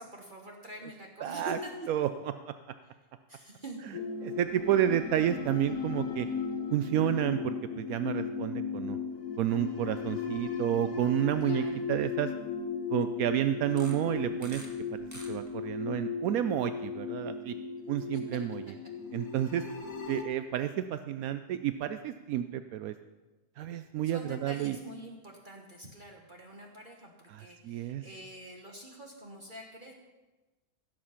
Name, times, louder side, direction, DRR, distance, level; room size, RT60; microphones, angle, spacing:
voice 1, 0.0-1.7 2.0-2.1 2.8-3.0 3.3-3.8 11.4-11.8 18.1-18.2 24.0-29.9, right 1 dB, 35° right, 1 dB, 1.5 m, -45 dB
voice 2, 1.2-1.6 1.9-2.1 4.2-6.3 6.7-9.0 9.4-12.3 12.9-14.6 14.9-17.5 17.9-18.6 19.1-19.6 20.1-22.9 23.6-24.7 27.6-28.0, right 11 dB, 80° right, 10 dB, 1.0 m, -30 dB
sound 1, 3.9-20.2, left 5 dB, 70° left, 1.5 m, -36 dB
sound 2, 10.1-10.2 10.6-10.8 11.4-11.5 13.7-14.7 15.0-15.7, right 1 dB, 10° right, 1.7 m, -48 dB
16.0 x 7.6 x 5.7 m, 1.1 s
omnidirectional pair, 1.5 m